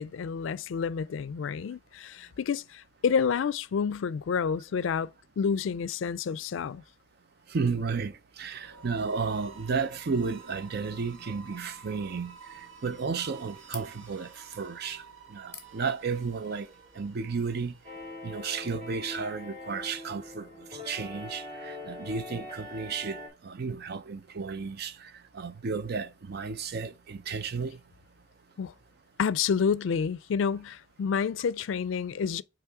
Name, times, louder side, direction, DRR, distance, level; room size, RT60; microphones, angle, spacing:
voice 1, 0.0-5.1 5.4-6.8 28.6-28.7 29.2-32.4, left 6 dB, 70° left, 0.4 m, -29 dB
voice 2, 7.5-15.0 15.3-16.7 17.0-17.8 18.2-27.8, right 5 dB, 55° right, 0.5 m, -33 dB
sound 1, 8.5-18.4, right 6 dB, 80° right, 1.2 m, -51 dB
sound 2, 12.4-18.9, left 6 dB, 15° left, 1.0 m, -54 dB
sound 3, 17.8-23.3, left 1 dB, 35° right, 3.5 m, -42 dB
8.2 x 3.1 x 4.6 m
head